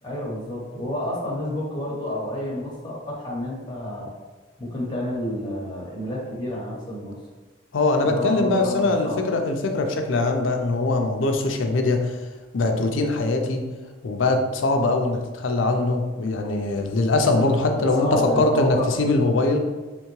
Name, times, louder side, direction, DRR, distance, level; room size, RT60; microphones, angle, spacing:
voice 1, 0.0-4.1 4.6-7.1 8.0-9.1 17.7-18.9, left 1 dB, 25° left, -5 dB, 1.0 m, -29 dB
voice 2, 7.7-12.2 12.5-13.6 14.0-19.6, left 2 dB, 85° left, 4 dB, 0.5 m, -22 dB
3.5 x 3.4 x 3.1 m, 1.3 s
head